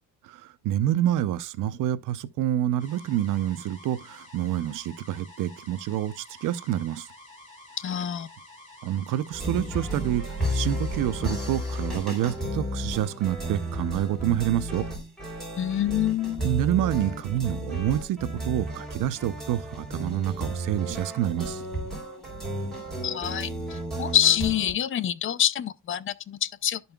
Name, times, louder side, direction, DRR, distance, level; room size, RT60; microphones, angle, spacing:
voice 1, 0.2-7.1 8.8-14.9 16.4-21.6, right 12 dB, 75° right, 0.6 m, -27 dB
sound 1, 2.8-12.3, left 2 dB, 25° left, 4.7 m, -49 dB
voice 2, 7.8-8.3 15.6-16.4 22.4-22.6 23.0-26.8, left 11 dB, 40° left, 0.4 m, -26 dB
sound 2, 9.3-24.7, right 1 dB, ahead, 3.3 m, -33 dB
12.0 x 5.4 x 2.2 m
cardioid pair, 160°, 32 cm